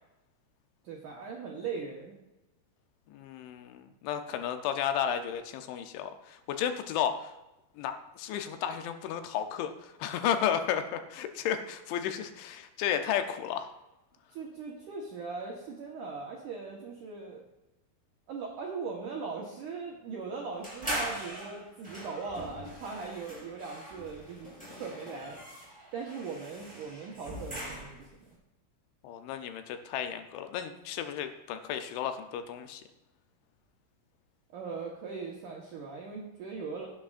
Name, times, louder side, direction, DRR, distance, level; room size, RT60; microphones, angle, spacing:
voice 1, 0.8-2.1 14.3-17.4 18.3-25.4 25.9-28.3 34.5-36.9, right 4 dB, 80° right, -2 dB, 1.8 m, -39 dB
voice 2, 3.1-7.3 7.8-13.7 29.0-32.8, left 9 dB, 80° left, 8 dB, 3.0 m, -33 dB
sound 1, 20.6-28.2, right 1 dB, ahead, 2.8 m, -41 dB
17.0 x 8.7 x 2.5 m, 0.98 s
omnidirectional pair, 5.5 m